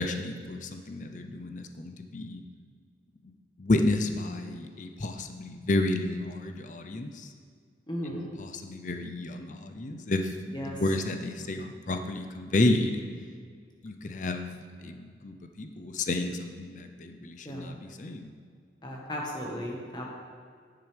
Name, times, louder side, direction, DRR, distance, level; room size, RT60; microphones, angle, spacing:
voice 1, 0.0-2.4 3.2-3.3 3.6-7.3 8.0-13.0 13.8-18.3, left 2 dB, 45° left, 6 dB, 0.6 m, -31 dB
voice 2, 7.9-8.2 10.5-10.8 17.4-17.7 18.8-20.1, equal, 25° left, -2 dB, 1.3 m, -35 dB
10.5 x 9.3 x 3.4 m, 2.1 s
head